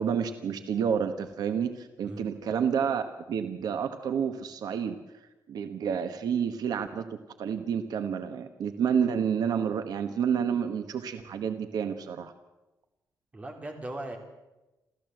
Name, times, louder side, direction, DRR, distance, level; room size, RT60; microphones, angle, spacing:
voice 1, 0.0-3.0 3.3-5.0 5.5-12.3, right 7 dB, 70° right, 8 dB, 1.3 m, -29 dB
voice 2, 13.3-14.2, right 1 dB, 20° right, 3 dB, 3.4 m, -38 dB
28.5 x 14.5 x 7.9 m, 1.0 s
wide cardioid pair, 165°, 7 cm